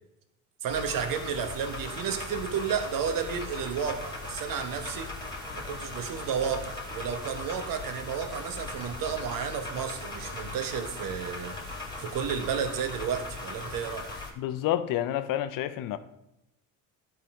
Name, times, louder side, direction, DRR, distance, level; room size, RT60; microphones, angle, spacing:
voice 1, 0.6-5.1 5.5-11.6 12.0-14.1, right 7 dB, 60° right, 7 dB, 1.2 m, -32 dB
sound 1, 0.7-14.3, left 2 dB, 10° left, 2.0 m, -39 dB
voice 2, 14.4-16.0, left 12 dB, 60° left, 12 dB, 0.7 m, -29 dB
11.5 x 3.9 x 4.8 m, 0.84 s
supercardioid pair, 85°, 38 cm